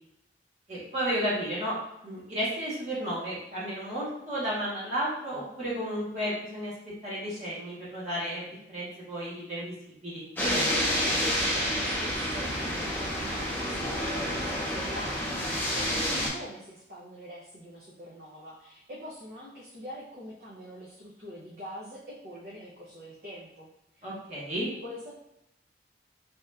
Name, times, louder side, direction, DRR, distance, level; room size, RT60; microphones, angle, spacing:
voice 1, 0.7-1.7 2.0-6.7 7.0-10.2 24.0-24.7, equal, 40° right, -8 dB, 0.9 m, -33 dB
sound 1, 10.4-16.3, equal, 10° left, 0.6 m, -29 dB
voice 2, 11.1-24.1 24.8-25.2, equal, 55° right, -5 dB, 0.6 m, -44 dB
2.8 x 2.3 x 3.2 m, 0.83 s
head